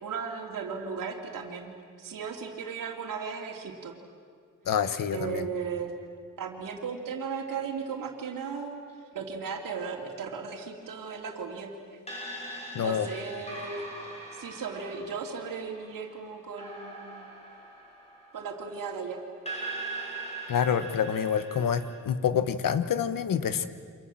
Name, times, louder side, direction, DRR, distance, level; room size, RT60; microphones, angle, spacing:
voice 1, 0.0-3.9 5.1-5.9 6.4-8.8 9.1-12.0 12.8-13.9 14.3-17.3 18.3-19.2, right 5 dB, 85° right, 0 dB, 3.0 m, -36 dB
voice 2, 4.7-5.5 12.7-13.1 20.5-23.7, left 8 dB, 85° left, 11 dB, 1.4 m, -27 dB
sound 1, 12.1-18.9 19.5-22.0, right 2 dB, 20° left, 7.9 m, -41 dB
29.5 x 26.0 x 7.7 m, 2.1 s
wide cardioid pair, 110°, 32 cm